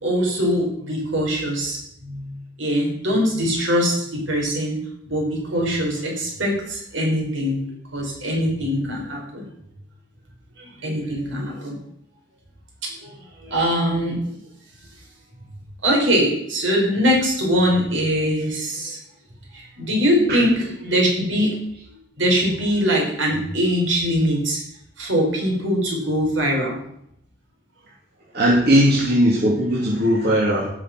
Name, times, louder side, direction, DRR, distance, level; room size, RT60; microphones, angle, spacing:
voice 1, 0.0-2.3 2.6-4.8 5.1-7.6 7.9-9.4 10.6-11.8 13.0-13.1 13.4-14.3 15.8-19.0 19.5-21.5 22.2-24.6 25.0-26.8, equal, 75° right, -1 dB, 5.3 m, -22 dB
voice 2, 28.3-30.7, equal, 55° right, -5 dB, 2.8 m, -18 dB
17.0 x 6.6 x 6.1 m, 0.71 s
head